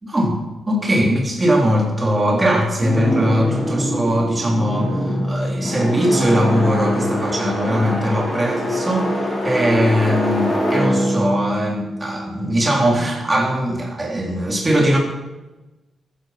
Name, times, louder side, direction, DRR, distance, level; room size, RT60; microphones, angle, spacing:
voice 1, 0.0-15.0, equal, 20° right, 0 dB, 4.0 m, -20 dB
sound 1, 2.8-12.8, equal, 20° left, 6.1 m, -23 dB
15.5 x 14.5 x 6.1 m, 1.1 s
wide cardioid pair, 155°, 0 cm